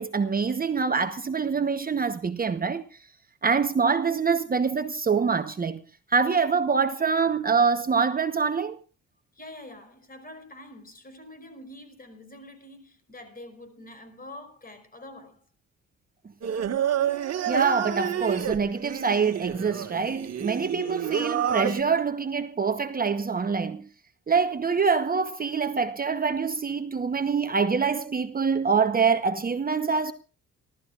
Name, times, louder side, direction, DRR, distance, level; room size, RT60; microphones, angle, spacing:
voice 1, 0.0-3.1 3.4-5.8 6.1-8.8 17.5-23.8 24.3-30.1, right 5 dB, 30° right, 1.0 m, -25 dB
voice 2, 9.3-15.5, left 1 dB, 30° left, 5.3 m, -45 dB
Singing, 16.4-21.8, right 9 dB, 60° right, 1.9 m, -29 dB
29.5 x 13.5 x 2.5 m
cardioid pair, 90°, 30 cm